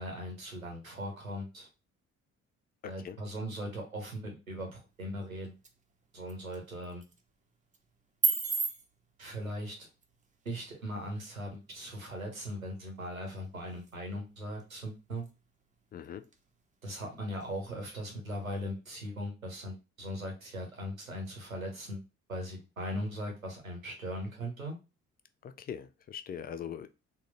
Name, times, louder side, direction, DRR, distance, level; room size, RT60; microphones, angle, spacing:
voice 1, 0.0-1.7 2.8-5.6 6.1-7.0 9.2-9.9 10.4-15.3 16.8-22.0 22.3-24.8, equal, 90° right, 0.8 m, -39 dB
voice 2, 2.8-3.2 15.9-16.3 25.4-26.9, left 8 dB, 25° left, 0.4 m, -41 dB
sound 1, 4.8-18.8, right 5 dB, 20° right, 0.6 m, -41 dB
3.6 x 2.1 x 3.9 m
figure-of-eight pair, 45°, 40 cm